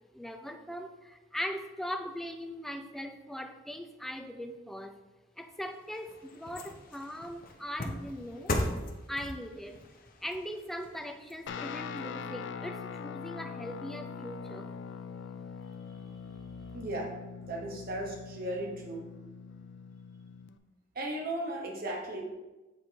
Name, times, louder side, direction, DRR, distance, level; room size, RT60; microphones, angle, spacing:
voice 1, 0.1-5.0 5.4-8.5 9.1-9.8 10.2-14.7, equal, ahead, 5 dB, 0.4 m, -40 dB
sound 1, 5.5-12.0 12.4-12.5, left 1 dB, 50° left, 0.7 m, -39 dB
Guitar, 11.5-20.6, left 6 dB, 70° left, 0.3 m, -42 dB
voice 2, 16.7-17.1 17.5-19.0 20.9-22.2, right 1 dB, 55° right, 0 dB, 1.1 m, -36 dB
7.5 x 4.3 x 3.3 m, 1.1 s
head